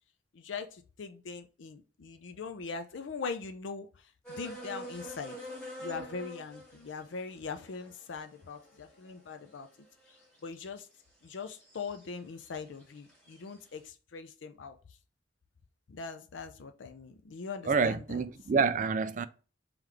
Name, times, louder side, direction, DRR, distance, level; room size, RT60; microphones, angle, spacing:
voice 1, 0.3-5.4 5.8-9.7 10.4-10.9 11.2-14.8 15.9-18.2, left 5 dB, 90° left, 0.5 m, -41 dB
sound 1, 4.2-10.7 11.3-12.1 12.4-13.5, equal, 5° left, 2.2 m, -46 dB
voice 2, 17.7-19.3, right 5 dB, 40° right, 0.3 m, -28 dB
3.8 x 3.1 x 3.3 m
head